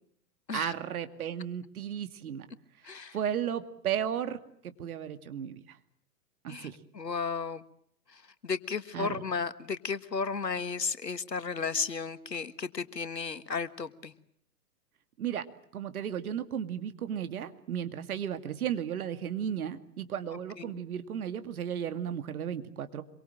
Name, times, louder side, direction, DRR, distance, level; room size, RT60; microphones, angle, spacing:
voice 1, 0.5-2.5 3.1-4.4 4.6-5.8 6.4-6.8 8.9-9.2 15.2-15.4 15.7-23.0, right 9 dB, 60° right, 9 dB, 2.4 m, -34 dB
voice 2, 2.8-3.2 6.5-7.6 8.1-14.1 20.6-20.8, left 5 dB, 90° left, 14 dB, 1.6 m, -34 dB
26.0 x 23.5 x 7.5 m, 0.67 s
figure-of-eight pair, 115°, 48 cm